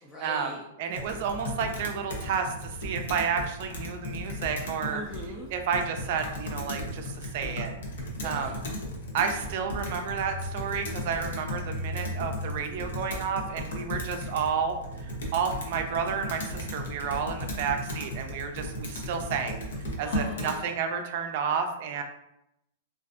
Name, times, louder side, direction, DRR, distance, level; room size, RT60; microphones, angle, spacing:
voice 1, 0.0-0.7 4.8-5.5 8.2-8.6 20.0-20.7, left 1 dB, 20° left, -3 dB, 0.4 m, -41 dB
voice 2, 0.8-5.0 5.5-7.7 8.2-8.6 9.1-19.6 20.0-22.0, right 6 dB, 55° right, 5 dB, 0.4 m, -31 dB
Computer keyboard, 0.9-20.6, left 1 dB, 80° left, 0.7 m, -36 dB
2.4 x 2.4 x 2.3 m, 0.85 s
hypercardioid pair, 130°, 0 cm